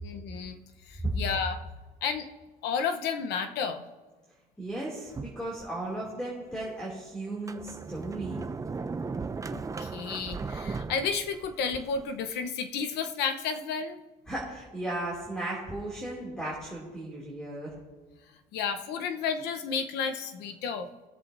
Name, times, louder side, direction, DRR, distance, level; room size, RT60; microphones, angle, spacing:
voice 1, 0.0-0.6 0.9-1.6 2.0-2.3 2.6-3.8 9.5-14.0 18.5-20.9, left 6 dB, 85° left, 7 dB, 0.9 m, -32 dB
voice 2, 4.6-8.4 14.3-17.7, right 2 dB, 5° left, -5 dB, 2.5 m, -35 dB
Sliding door, 5.1-6.0 6.6-6.7 7.3-12.1, right 4 dB, 20° right, 0.5 m, -37 dB
20.0 x 7.6 x 2.6 m, 1.3 s
cardioid pair, 110°, 17 cm